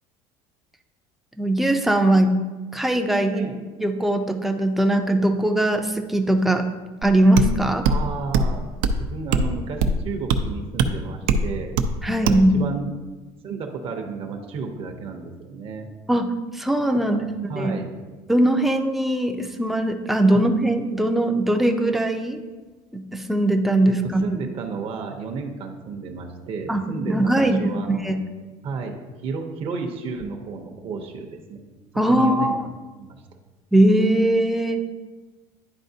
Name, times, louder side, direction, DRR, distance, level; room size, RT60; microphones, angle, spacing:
voice 1, 1.4-2.4 2.7-3.5 3.8-6.7 7.0-7.9 12.0-12.5 16.1-17.2 17.6-17.8 18.3-22.4 22.9-24.2 26.7-28.2 32.0-32.7 33.7-34.8, right 1 dB, ahead, 4 dB, 0.4 m, -20 dB
sound 1, 7.0-7.1 7.4-7.5 7.8-8.0 8.3-8.5 8.8-9.0 9.3-9.5 9.8-10.0 10.3-10.4 10.8-10.9 11.3-11.4 11.8-11.9 12.3-12.4, right 4 dB, 75° right, 0.6 m, -20 dB
voice 2, 7.9-8.6 9.0-11.8 12.2-12.9 13.4-15.9 17.0-17.2 17.5-17.9 20.3-20.4 23.9-28.0 28.6-31.6 32.1-32.5 33.0-33.2, right 4 dB, 45° right, 3 dB, 0.7 m, -32 dB
10.5 x 4.1 x 2.7 m, 1.3 s
cardioid pair, 145°, 14 cm